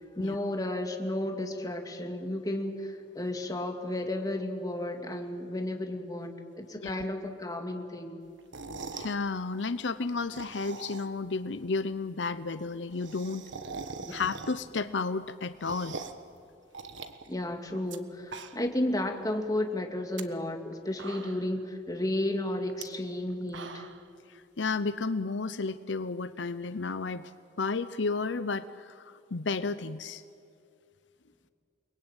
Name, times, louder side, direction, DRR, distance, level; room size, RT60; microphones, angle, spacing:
voice 1, 0.2-8.2 14.0-14.1 17.3-23.9, left 1 dB, 20° left, 3 dB, 2.4 m, -33 dB
sound 1, 8.4-9.2 10.2-11.3 11.6-11.7 11.9-12.0 12.2-12.3 12.6-14.8 15.2-16.3 16.7-18.0 18.2-18.8 19.2-19.3 19.9-20.2 20.7-20.8 21.0-21.6 22.7-22.8 23.3-24.1, right 4 dB, 85° right, 1.4 m, -42 dB
voice 2, 8.9-13.4 14.1-16.0 24.3-27.3 27.6-30.2, left 4 dB, 75° left, 12 dB, 0.7 m, -32 dB
29.5 x 21.0 x 9.0 m, 2.4 s
head